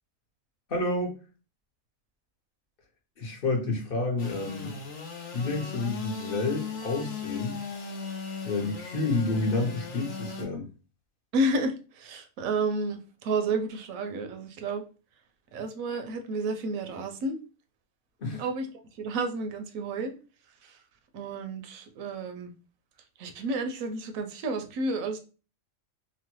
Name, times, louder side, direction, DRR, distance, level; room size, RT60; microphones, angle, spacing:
voice 1, 0.7-1.1 3.2-4.8 5.3-7.6 8.4-10.7 18.2-18.5, left 2 dB, 50° left, 0.9 m, -29 dB
Engine / Sawing, 4.2-10.5, left 5 dB, 80° left, 1.2 m, -38 dB
voice 2, 11.3-14.8 15.5-17.4 18.4-18.7 19.0-20.1 20.6-20.7 21.1-22.5 23.2-25.2, right 2 dB, 85° right, 1.0 m, -31 dB
3.0 x 2.1 x 2.9 m
omnidirectional pair, 1.4 m